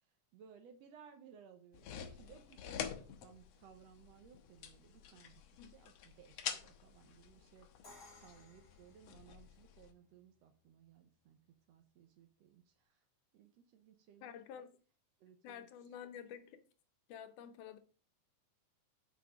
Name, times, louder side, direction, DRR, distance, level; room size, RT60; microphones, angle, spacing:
voice 1, 0.0-7.7 8.2-13.0 13.3-14.5 15.2-15.7, right 8 dB, 70° right, 1.7 m, -61 dB
sound 1, 1.7-9.9, left 8 dB, 70° left, 1.8 m, -48 dB
Crash cymbal, 7.8-9.8, left 2 dB, 30° left, 2.0 m, -60 dB
voice 2, 14.2-14.7 15.4-16.6 17.1-17.8, left 9 dB, 85° left, 2.4 m, -50 dB
6.9 x 5.8 x 4.8 m
omnidirectional pair, 3.5 m